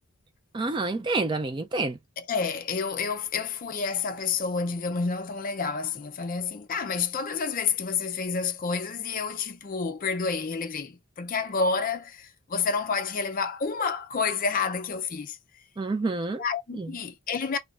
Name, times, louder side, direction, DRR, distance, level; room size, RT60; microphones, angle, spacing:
voice 1, 0.5-2.0 15.8-16.4 16.7-16.9, right 3 dB, 20° right, 0.3 m, -28 dB
voice 2, 2.2-15.4 16.4-17.6, left 5 dB, 40° left, 0.5 m, -29 dB
3.3 x 2.2 x 3.6 m
head